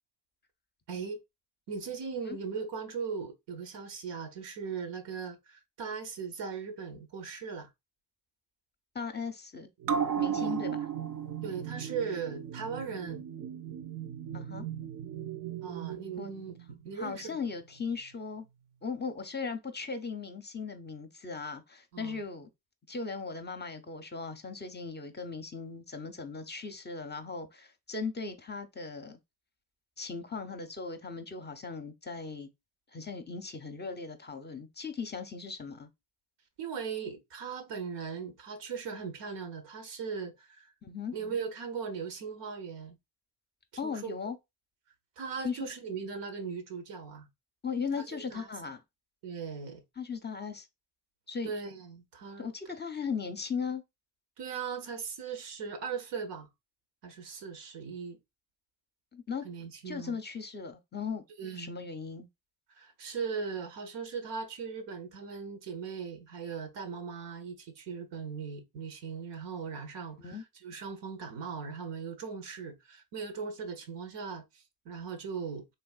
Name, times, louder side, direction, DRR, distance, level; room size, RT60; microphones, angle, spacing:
voice 1, 0.9-1.2 1.7-7.7 10.3-10.6 11.4-13.2 15.6-17.4 21.9-22.2 36.6-40.7 41.1-43.0 43.8-44.2 45.2-47.3 48.1-48.5 49.2-49.8 51.4-52.5 54.4-56.5 57.0-58.2 59.4-60.2 61.4-61.7 62.7-75.7, right 5 dB, 90° right, 0.7 m, -39 dB
voice 2, 8.9-9.7 10.2-10.9 14.3-14.7 16.2-16.3 17.0-18.5 18.8-22.5 22.9-29.2 30.0-32.5 32.9-35.9 40.8-41.1 43.8-44.4 45.4-45.6 47.6-48.8 50.0-50.7 51.3-51.5 52.4-53.8 59.1-59.4 59.9-61.2 61.6-62.3 70.2-70.4, left 5 dB, 25° left, 0.5 m, -38 dB
sound 1, 9.8-16.8 17.1-17.2, right 8 dB, 50° right, 0.5 m, -35 dB
3.3 x 2.6 x 2.3 m
cardioid pair, 60°, 42 cm